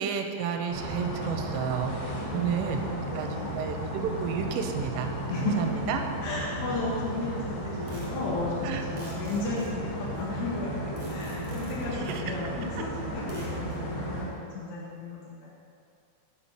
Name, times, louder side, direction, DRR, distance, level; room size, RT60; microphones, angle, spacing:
voice 1, 0.0-2.8 3.1-6.0 8.6-8.8 11.9-12.3, right 7 dB, 85° right, 5 dB, 3.1 m, -32 dB
sound 1, 0.7-14.3, equal, 55° left, 1.5 m, -34 dB
voice 2, 2.3-3.5 5.3-5.6 6.2-15.5, left 3 dB, 85° left, -7 dB, 3.5 m, -34 dB
sound 2, 6.3-6.4 7.9-8.2 8.8-10.3 11.0-11.9 13.3-13.8, right 2 dB, 70° right, 1.4 m, -49 dB
9.4 x 4.2 x 6.0 m, 2.4 s
omnidirectional pair, 5.5 m